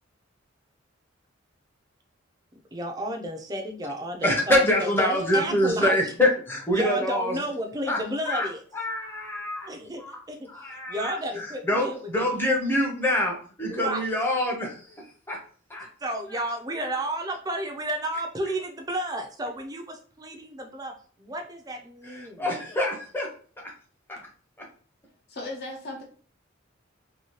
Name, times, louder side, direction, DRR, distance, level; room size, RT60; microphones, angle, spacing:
voice 1, 2.5-6.0 6.7-8.6 9.7-12.3 13.7-14.1 16.0-22.6, right 1 dB, 20° right, 3 dB, 0.4 m, -32 dB
voice 2, 4.2-7.3 7.9-8.0 8.3-8.5 8.7-9.7 10.0-10.2 10.5-15.4 15.7-15.9 22.1-23.3 23.6-23.7 24.1-24.2, left 1 dB, 10° left, 0 dB, 0.7 m, -26 dB
voice 3, 25.3-26.0, left 2 dB, 55° left, 0 dB, 0.9 m, -36 dB
2.8 x 2.7 x 3.0 m, 0.44 s
head